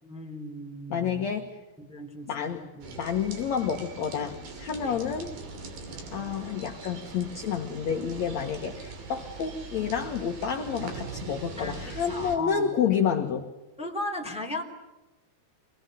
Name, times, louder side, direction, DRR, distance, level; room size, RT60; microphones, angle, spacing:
voice 1, 0.0-1.3 1.8-3.0 4.8-5.0 11.6-12.7 13.8-14.6, left 1 dB, ahead, 0 dB, 3.2 m, -37 dB
voice 2, 0.9-1.6 2.3-2.6 3.0-5.3 6.1-13.5, left 7 dB, 60° left, 4 dB, 1.9 m, -29 dB
sound 1, 2.8-12.4, right 4 dB, 55° right, 4.6 m, -41 dB
27.0 x 21.0 x 9.3 m, 1.1 s
omnidirectional pair, 5.0 m